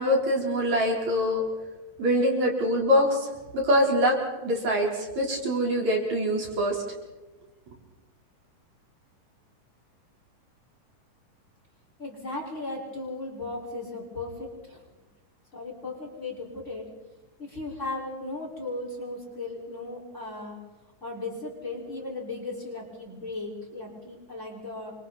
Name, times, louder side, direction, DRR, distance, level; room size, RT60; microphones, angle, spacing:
voice 1, 0.0-1.4 2.0-3.3 3.5-4.2 4.4-6.8, equal, 60° right, -1 dB, 5.4 m, -24 dB
voice 2, 12.0-14.8 15.5-16.9 17.4-20.6 21.0-24.9, left 2 dB, 20° left, -2 dB, 5.7 m, -36 dB
29.0 x 25.5 x 4.3 m, 1.1 s
omnidirectional pair, 3.7 m